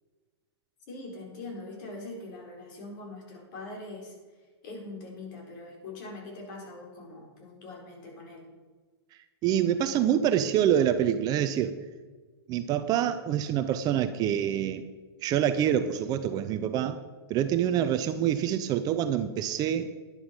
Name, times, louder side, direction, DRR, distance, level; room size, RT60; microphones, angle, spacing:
voice 1, 0.9-4.1 4.6-8.5, left 2 dB, 50° left, 0 dB, 4.5 m, -42 dB
voice 2, 9.4-11.8 12.5-14.8 15.2-17.0 17.3-19.9, right 10 dB, 30° right, 10 dB, 0.6 m, -26 dB
11.0 x 10.5 x 5.3 m, 1.4 s
hypercardioid pair, 135°, 14 cm